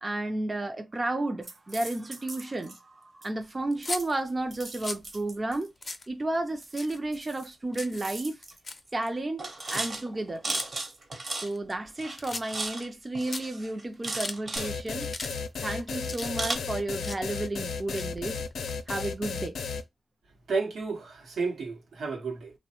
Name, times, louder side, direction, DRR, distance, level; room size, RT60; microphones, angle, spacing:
voice 1, 0.0-5.7 6.1-8.4 8.9-10.6 11.4-15.1 15.6-18.4 18.9-19.6, right 2 dB, 25° right, 0.4 m, -32 dB
sound 1, 1.4-2.8 3.2-3.5 3.8-5.9 6.6-7.5 7.8-8.6 8.9-9.1 9.4-11.7 12.0-12.9 13.1-14.7 15.0-15.7 16.4-16.5, right 2 dB, 45° right, 0.9 m, -37 dB
sound 2, 3.7-4.0 4.6-5.1 5.5-5.6 5.8-6.1 6.6-7.2 7.4-8.0 8.4-8.8 9.6-9.8 10.5-10.6 11.3-11.9 12.2-12.7 13.0-13.1 13.3-13.4 13.9-14.4 14.9-15.3 15.6-16.6 16.9-17.2 17.8-18.7, left 3 dB, 35° left, 0.5 m, -38 dB
sound 3, 14.6-19.8, left 5 dB, 85° left, 0.5 m, -34 dB
voice 2, 20.5-22.5, right 4 dB, 80° right, 0.8 m, -32 dB
3.0 x 2.1 x 2.8 m
wide cardioid pair, 95°, 0 cm